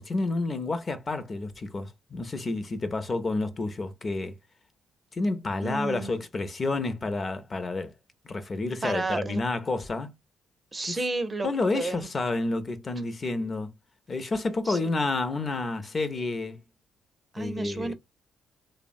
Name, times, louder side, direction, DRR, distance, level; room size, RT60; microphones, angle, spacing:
voice 1, 0.0-4.3 5.1-7.9 8.2-10.1 10.9-11.0 11.4-13.7 14.1-16.6 17.4-17.9, left 3 dB, 35° left, 0.5 m, -30 dB
voice 2, 5.6-6.1 8.8-9.4 10.7-11.5 11.7-12.1 14.7-14.8 17.3-17.9, right 3 dB, 25° right, 0.5 m, -31 dB
2.9 x 2.0 x 2.5 m
cardioid pair, 90°, 0 cm